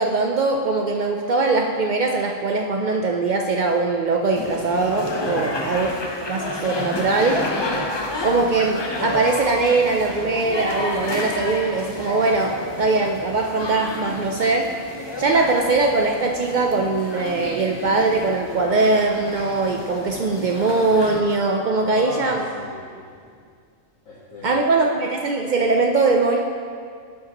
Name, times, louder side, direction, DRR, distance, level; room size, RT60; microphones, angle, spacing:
voice 1, 0.0-5.9 6.2-7.4 8.2-22.5 24.4-26.4, right 3 dB, 80° right, 1 dB, 0.4 m, -21 dB
sound 1, 4.3-21.2, left 1 dB, 30° left, 0.5 m, -31 dB
voice 2, 5.3-5.8 21.9-23.4 24.0-24.7, left 1 dB, 85° left, -8 dB, 1.6 m, -37 dB
12.5 x 5.6 x 2.9 m, 2.1 s
omnidirectional pair, 1.4 m